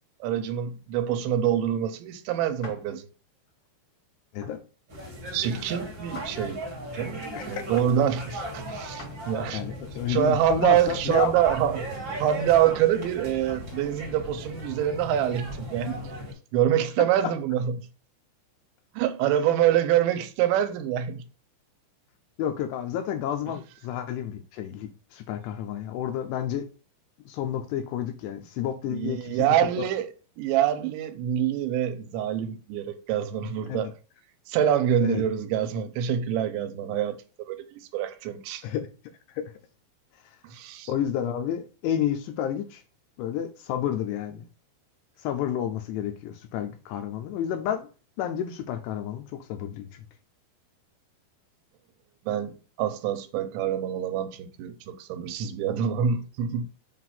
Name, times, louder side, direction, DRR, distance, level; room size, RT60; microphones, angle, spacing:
voice 1, 0.2-3.1 5.3-6.6 6.9-7.2 7.5-9.6 10.1-16.0 16.5-17.8 19.0-21.2 28.9-30.1 30.4-33.9 34.5-37.2 37.5-38.6 40.4-40.9 52.3-52.5 52.8-56.6, right 10 dB, 85° right, 3.0 m, -25 dB
sound 1, 2.6-2.9 3.5-3.7 4.4-4.7 6.1-6.9 9.0-9.3 9.8-9.9 11.5-12.2, left 1 dB, 55° left, 1.2 m, -46 dB
sound 2, 4.9-16.3, right 1 dB, 50° right, 1.4 m, -37 dB
voice 2, 9.5-11.3 22.4-26.7 27.3-29.9 33.7-33.9 35.0-35.2 38.6-38.9 39.3-39.5 40.9-42.8 43.2-44.4 45.2-47.9 48.2-50.0, left 10 dB, 80° left, 2.5 m, -30 dB
7.4 x 2.5 x 5.7 m
omnidirectional pair, 5.2 m